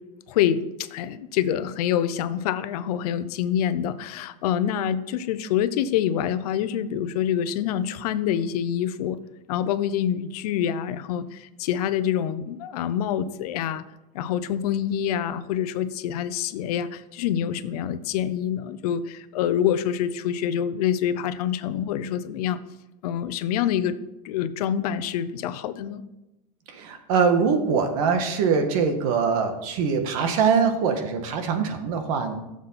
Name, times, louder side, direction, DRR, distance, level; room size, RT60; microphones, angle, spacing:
voice 1, 0.3-9.2 9.5-13.8 14.1-22.6 23.0-24.0 24.2-26.0, left 9 dB, 65° left, 13 dB, 0.8 m, -26 dB
voice 2, 26.7-32.3, right 5 dB, 55° right, 6 dB, 1.6 m, -23 dB
14.5 x 7.3 x 4.2 m, 0.97 s
supercardioid pair, 160°, 21 cm